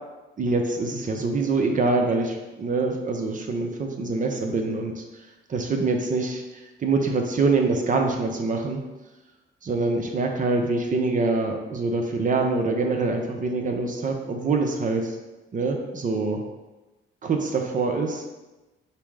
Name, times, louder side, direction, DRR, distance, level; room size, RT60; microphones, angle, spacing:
voice 1, 0.4-5.0 5.5-8.8 9.6-15.2 15.5-16.4 17.2-18.2, right 3 dB, 40° right, 3 dB, 0.7 m, -25 dB
5.5 x 2.1 x 4.7 m, 1.1 s
cardioid pair, 90°, 20 cm